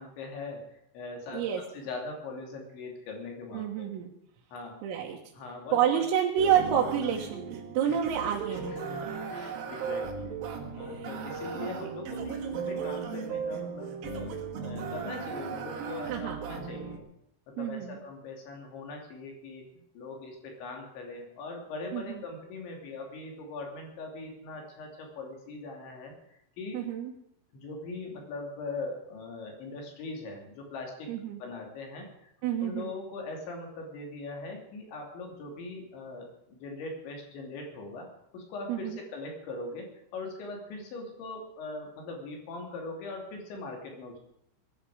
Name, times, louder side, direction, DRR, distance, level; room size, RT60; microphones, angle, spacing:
voice 1, 0.0-3.9 4.5-4.8 5.3-6.0 7.9-8.0 8.5-10.4 10.8-17.0 17.5-26.8 27.5-31.1 31.4-32.3 32.6-38.1 38.3-44.2, left 3 dB, 65° left, 1 dB, 4.9 m, -41 dB
voice 2, 3.5-4.1 4.8-5.2 5.7-8.8 10.9-11.1 11.6-11.7 16.1-16.4 17.6-18.0 21.9-22.2 26.7-27.1 31.1-31.4 32.4-32.9 38.7-39.0, right 9 dB, 80° right, -2 dB, 4.3 m, -29 dB
sound 1, 6.4-17.0, right 5 dB, 60° right, 2.8 m, -36 dB
21.0 x 12.5 x 4.9 m, 0.76 s
omnidirectional pair, 6.0 m